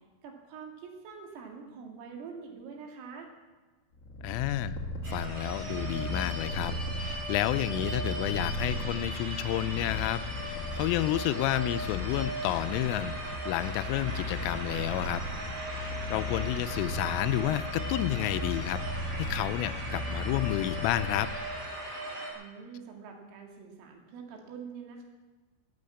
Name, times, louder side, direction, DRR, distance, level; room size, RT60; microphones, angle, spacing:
voice 1, 0.2-3.3 22.3-25.0, right 5 dB, 80° right, 1 dB, 4.5 m, -45 dB
Purr, 4.0-21.7, left 2 dB, 45° left, 2.1 m, -37 dB
voice 2, 4.2-4.8 5.1-15.2 15.7-18.8 19.2-21.3, left 14 dB, 85° left, 13 dB, 3.1 m, -31 dB
sound 1, 5.0-22.3, right 1 dB, 35° right, 3.0 m, -39 dB
13.5 x 8.5 x 8.6 m, 1.3 s
omnidirectional pair, 5.9 m